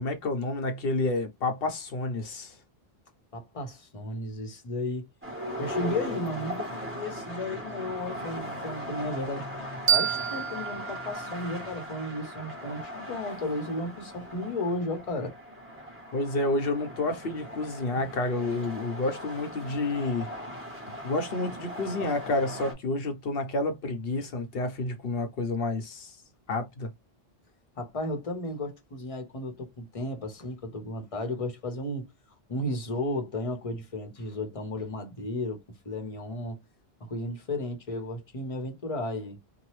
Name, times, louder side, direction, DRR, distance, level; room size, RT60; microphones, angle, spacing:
voice 1, 0.0-2.6 16.1-20.3 21.0-26.2 26.5-26.9, left 2 dB, 70° left, 1.0 m, -29 dB
voice 2, 3.3-5.1 5.6-9.5 9.9-15.4 17.9-18.0 27.8-32.1 32.5-36.6 37.0-39.4, left 1 dB, 35° left, 0.9 m, -34 dB
sound 1, 5.2-22.7, equal, 15° right, 1.2 m, -39 dB
sound 2, 9.9-12.7, right 8 dB, 50° right, 0.8 m, -30 dB
2.8 x 2.3 x 3.0 m
omnidirectional pair, 1.0 m